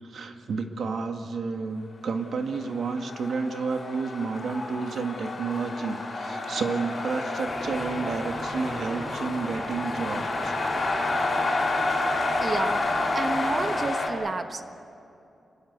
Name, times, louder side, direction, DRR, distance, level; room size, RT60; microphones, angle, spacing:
voice 1, 0.0-10.6, right 4 dB, 70° right, 5 dB, 1.8 m, -31 dB
sound 1, 2.6-14.1, left 2 dB, 40° left, 5.2 m, -29 dB
sound 2, 7.4-13.9, left 1 dB, 5° right, 2.3 m, -41 dB
voice 2, 12.4-14.7, right 3 dB, 35° right, 8 dB, 1.2 m, -31 dB
26.5 x 21.0 x 8.3 m, 2.6 s
wide cardioid pair, 150°, 0 cm